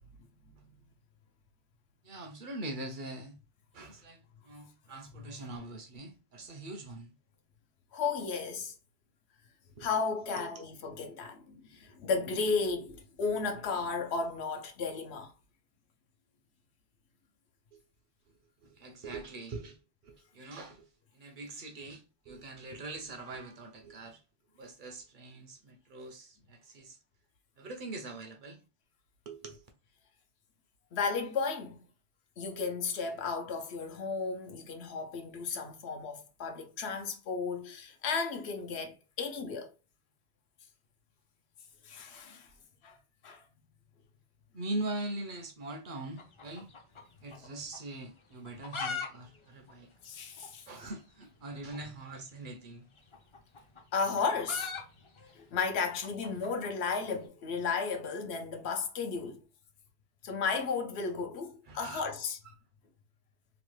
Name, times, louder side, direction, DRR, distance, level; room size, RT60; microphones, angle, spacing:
voice 1, 2.0-3.4 3.7-7.1 9.8-9.9 10.4-10.6 17.7-17.8 18.6-19.8 20.0-20.9 21.1-24.2 24.6-27.0 27.6-28.6 29.3-29.7 44.5-46.7 47.2-49.9 50.7-52.8 61.7-62.1 62.4-62.5, right 2 dB, 60° right, 0.6 m, -42 dB
voice 2, 7.9-8.7 9.8-15.3 30.9-31.8 32.4-39.7 41.8-42.5 42.8-43.0 43.2-43.4 50.0-50.7 53.9-54.7 55.3-59.4 60.2-62.4, left 5 dB, 80° left, 0.9 m, -34 dB
sound 1, 46.1-47.5 47.7-47.8 48.4-49.1 49.3-49.4 49.7-49.8 50.4-50.5 51.7-51.8 53.0-57.2, left 5 dB, 40° left, 0.5 m, -40 dB
3.0 x 2.2 x 3.1 m
omnidirectional pair, 1.1 m